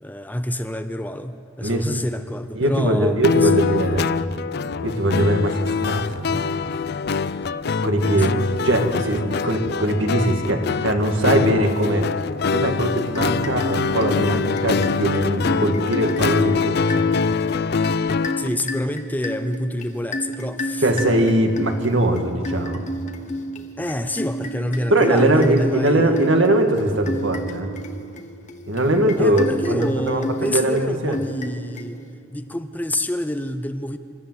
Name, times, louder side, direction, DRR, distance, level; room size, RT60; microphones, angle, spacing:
voice 1, 0.0-4.0 8.2-8.3 18.4-21.3 23.8-26.3 29.2-32.0 32.3-34.0, left 1 dB, 10° left, 9 dB, 0.6 m, -28 dB
voice 2, 2.6-4.0 4.8-6.4 7.8-8.3 8.6-12.1 12.5-17.1 20.8-22.8 24.9-27.7 28.7-31.2, right 1 dB, 70° right, 4 dB, 2.1 m, -21 dB
sound 1, 3.2-18.5, left 5 dB, 55° left, 0.5 m, -24 dB
sound 2, 13.1-32.3, right 1 dB, 35° left, 1.2 m, -32 dB
27.5 x 13.5 x 8.1 m, 2.5 s
head